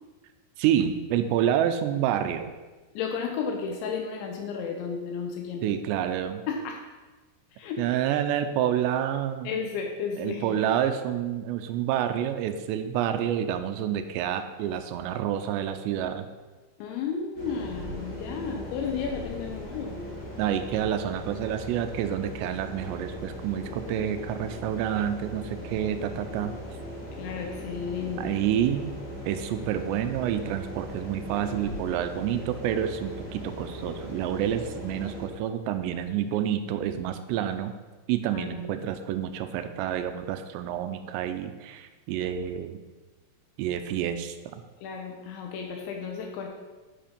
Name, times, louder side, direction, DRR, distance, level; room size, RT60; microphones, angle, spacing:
voice 1, 0.6-2.5 5.6-6.4 7.8-9.5 10.2-16.3 20.4-26.5 28.2-28.9 29.3-37.7 38.1-42.8 43.6-44.4, right 10 dB, 85° right, 8 dB, 2.7 m, -28 dB
voice 2, 2.9-5.6 6.5-6.8 7.5-7.8 9.4-10.6 16.8-20.1 27.2-28.4 38.3-38.6 44.8-46.5, left 6 dB, 85° left, 2 dB, 3.1 m, -33 dB
sound 1, 17.3-35.3, equal, 25° left, 2.8 m, -39 dB
10.0 x 5.1 x 5.2 m, 1.3 s
omnidirectional pair, 5.2 m